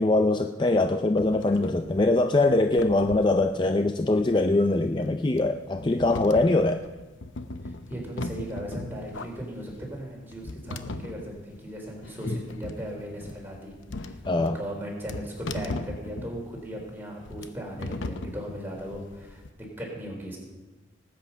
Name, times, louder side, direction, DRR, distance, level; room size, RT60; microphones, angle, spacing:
voice 1, 0.0-6.8 12.3-12.4 14.3-14.6, left 2 dB, 25° left, 7 dB, 0.4 m, -23 dB
sound 1, 1.2-19.5, left 2 dB, 90° left, 0.8 m, -39 dB
voice 2, 7.6-13.7 14.0-20.4, equal, 10° right, -1 dB, 3.4 m, -37 dB
19.0 x 8.5 x 5.5 m, 1.2 s
head